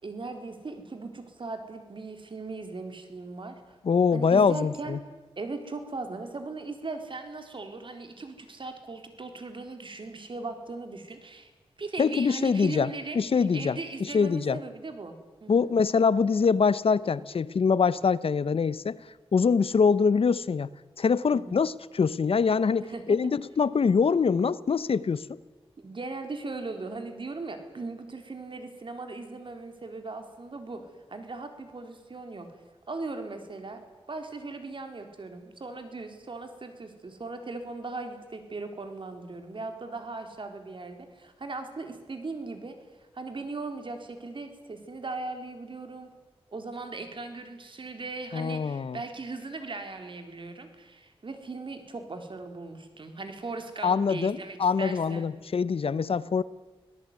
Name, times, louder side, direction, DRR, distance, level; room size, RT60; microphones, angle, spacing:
voice 1, 0.0-3.8 4.1-5.0 5.4-11.5 11.8-13.2 13.5-15.6 21.3-21.6 22.8-23.3 25.8-30.8 31.1-32.5 32.9-33.8 34.1-42.8 43.1-46.1 46.5-55.3, right 3 dB, 55° right, 6 dB, 3.9 m, -38 dB
voice 2, 3.8-5.0 12.0-14.6 15.5-19.0 19.3-20.7 21.0-25.4 48.3-49.0 53.8-56.4, left 5 dB, 70° left, 18 dB, 0.8 m, -24 dB
25.5 x 18.0 x 9.6 m, 1.2 s
wide cardioid pair, 85°, 10 cm